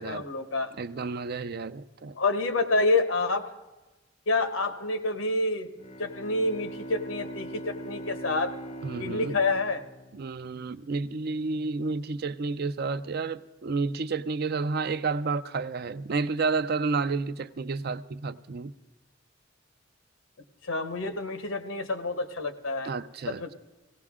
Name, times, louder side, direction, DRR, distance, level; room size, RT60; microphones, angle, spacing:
voice 1, 0.0-0.7 2.2-3.5 4.3-5.7 6.0-8.5 9.0-9.8 20.6-22.9 23.3-23.5, left 2 dB, 85° left, 1.1 m, -28 dB
voice 2, 0.8-2.2 8.8-9.4 10.1-18.7 22.8-23.5, right 4 dB, 50° right, 0.5 m, -31 dB
Bowed string instrument, 5.8-11.0, right 1 dB, 35° left, 0.6 m, -41 dB
17.5 x 17.5 x 3.6 m
head